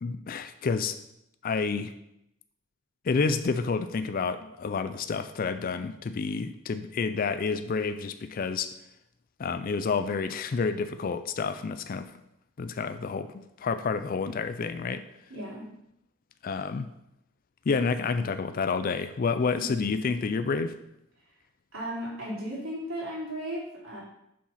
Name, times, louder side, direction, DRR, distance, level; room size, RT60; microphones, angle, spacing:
voice 1, 0.0-1.0 1.4-1.9 3.0-8.7 9.4-12.1 12.6-15.0 16.4-16.9 17.7-20.7, left 4 dB, 40° left, 10 dB, 0.4 m, -29 dB
voice 2, 15.3-15.7 19.6-19.7 21.7-24.0, equal, 75° right, -6 dB, 3.5 m, -35 dB
7.2 x 4.8 x 5.5 m, 0.81 s
head